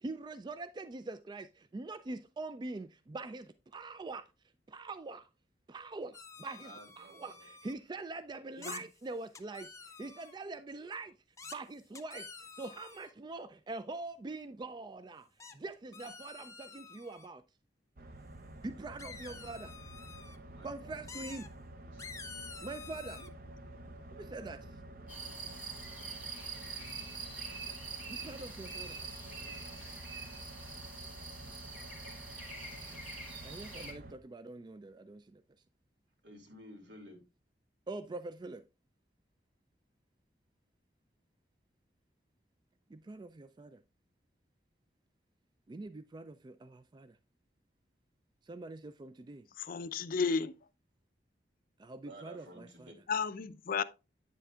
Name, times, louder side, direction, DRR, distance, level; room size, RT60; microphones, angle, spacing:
voice 1, 0.0-4.2 4.7-5.3 5.7-9.7 10.0-11.1 11.5-12.3 12.6-15.3 15.5-17.4 18.6-19.7 20.6-21.5 22.6-23.2 24.1-24.6 28.1-29.0 33.4-35.4 37.9-38.6 42.9-43.8 45.7-47.1 48.5-49.4 51.8-52.9, right 3 dB, 25° right, 0.3 m, -44 dB
sound 1, 6.1-7.7 8.6-8.8 9.3-10.4 11.4-11.6 11.9-13.1 15.4-15.5 15.9-17.3 19.0-20.4 21.1-21.5 22.0-23.3, left 5 dB, 15° left, 0.7 m, -49 dB
voice 2, 6.6-7.5 20.5-21.0 21.8-22.3 29.3-29.8 36.2-37.2 52.1-52.9, right 1 dB, 75° right, 2.5 m, -54 dB
sound 2, 18.0-34.1, right 1 dB, 55° right, 0.7 m, -50 dB
sound 3, 25.1-33.9, right 4 dB, 5° right, 1.6 m, -45 dB
voice 3, 49.6-50.5 53.1-53.8, left 5 dB, 50° left, 0.5 m, -33 dB
8.9 x 7.4 x 2.3 m
head